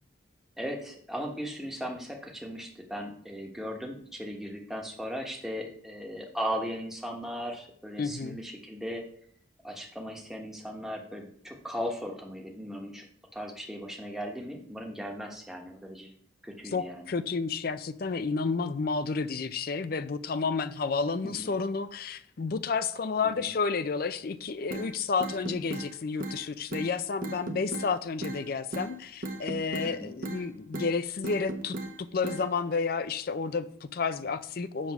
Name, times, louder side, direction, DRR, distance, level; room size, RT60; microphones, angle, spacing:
voice 1, 0.6-9.0 9.6-13.1 13.3-16.1 16.4-17.1 21.2-21.5 23.4-23.5 29.8-30.1, equal, ahead, 0 dB, 1.1 m, -37 dB
voice 2, 8.0-8.4 16.7-31.8 32.1-34.9, left 4 dB, 50° left, 13 dB, 0.4 m, -31 dB
sound 1, 24.7-24.9 25.2-25.9 26.2-26.4 26.7-26.9 27.2-27.9 28.2-28.4 28.7-28.9 29.2-29.9 30.2-30.4 30.7-30.9 31.2-31.9 32.2-32.4, right 1 dB, 45° right, 0.8 m, -35 dB
7.5 x 3.4 x 5.9 m, 0.62 s
head